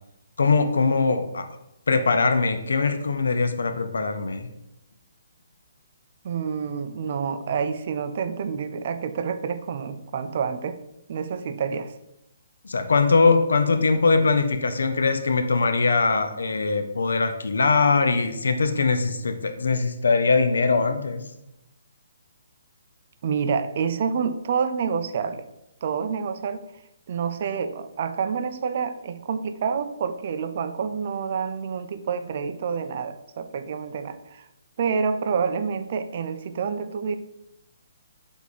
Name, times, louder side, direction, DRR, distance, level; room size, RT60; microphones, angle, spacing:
voice 1, 0.4-1.5 1.9-4.5 12.6-21.2, left 4 dB, 85° left, 8 dB, 0.5 m, -21 dB
voice 2, 6.2-10.8 11.1-11.9 23.2-25.4 25.8-26.6 27.1-34.5 34.8-37.2, right 6 dB, 45° right, 10 dB, 0.3 m, -28 dB
3.4 x 3.0 x 4.0 m, 0.86 s
hypercardioid pair, 160°, 0 cm